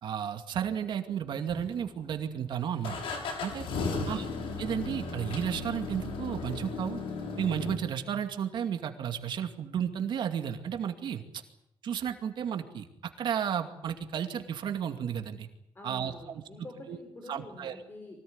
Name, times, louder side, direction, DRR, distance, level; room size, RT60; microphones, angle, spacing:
voice 1, 0.0-3.0 3.4-3.6 4.1-4.2 4.6-7.0 7.4-11.2 11.8-12.9 13.2-15.5 15.8-16.1 16.9-17.0 17.3-17.7, right 8 dB, 60° right, 6 dB, 2.4 m, -33 dB
sound 1, 1.5-2.2 2.8-7.8, left 3 dB, 90° left, 6.5 m, -35 dB
voice 2, 3.9-4.3 15.7-18.2, left 1 dB, 25° left, 4 dB, 4.3 m, -47 dB
24.0 x 18.5 x 9.7 m, 0.81 s
cardioid pair, 145°, 9 cm